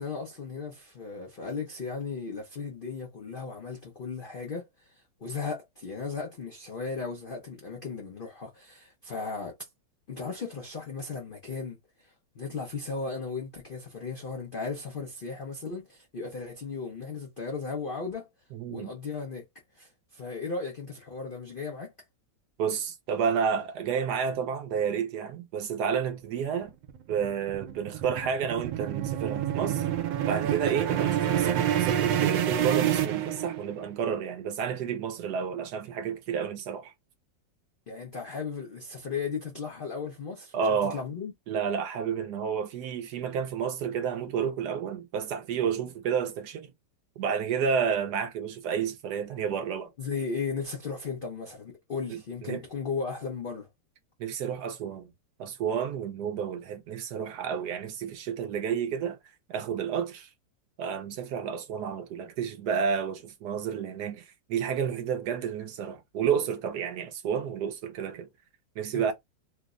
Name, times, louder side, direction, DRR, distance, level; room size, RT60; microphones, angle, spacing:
voice 1, 0.0-4.9 5.2-9.6 10.1-11.8 12.0-18.3 18.7-19.5 19.7-21.9 37.9-41.3 50.0-53.7 68.9-69.1, left 5 dB, 80° left, 0.4 m, -36 dB
voice 2, 18.5-18.9 22.6-26.7 27.1-29.9 30.2-36.9 40.5-41.0 41.5-46.7 47.2-49.9 52.1-52.6 54.2-55.1 55.4-59.2 59.5-60.3 60.8-68.3 68.8-69.1, right 7 dB, 70° right, 1.1 m, -30 dB
sound 1, 26.6-33.9, right 11 dB, 85° right, 1.3 m, -28 dB
3.3 x 2.0 x 3.6 m
omnidirectional pair, 2.0 m